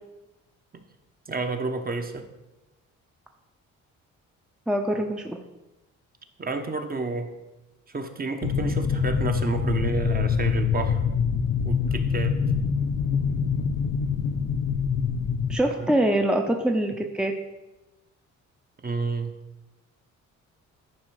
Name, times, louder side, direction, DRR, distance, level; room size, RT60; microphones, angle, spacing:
voice 1, 1.3-2.3 6.4-7.3 7.9-11.0 11.6-12.4 18.8-19.3, right 3 dB, 30° right, 6 dB, 1.1 m, -30 dB
voice 2, 4.7-5.4 15.5-17.3, right 1 dB, 5° right, 3 dB, 0.7 m, -24 dB
sound 1, 8.4-15.6, left 6 dB, 60° left, 0.8 m, -25 dB
10.5 x 5.2 x 4.9 m, 1.0 s
cardioid pair, 90°, 30 cm